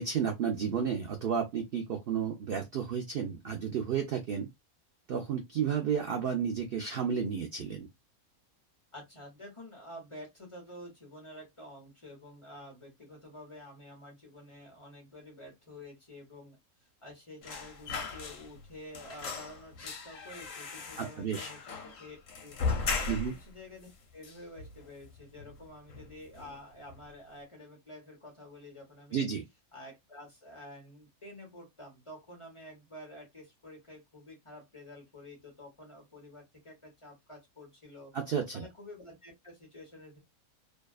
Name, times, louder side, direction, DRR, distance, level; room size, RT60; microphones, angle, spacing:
voice 1, 0.0-4.5 5.1-7.9 21.0-21.5 23.1-23.3 29.1-29.4 38.1-38.7, right 7 dB, 65° right, 0.5 m, -32 dB
voice 2, 8.9-16.6 17.0-22.6 22.9-29.3 29.7-38.1 38.5-40.2, left 1 dB, 25° left, 1.0 m, -49 dB
sound 1, 17.4-18.7 18.9-23.5 23.8-23.9 24.2-25.0 25.4-25.6 25.9-26.6 26.9-27.1, left 4 dB, 65° left, 1.1 m, -37 dB
2.7 x 2.3 x 2.3 m
omnidirectional pair, 1.5 m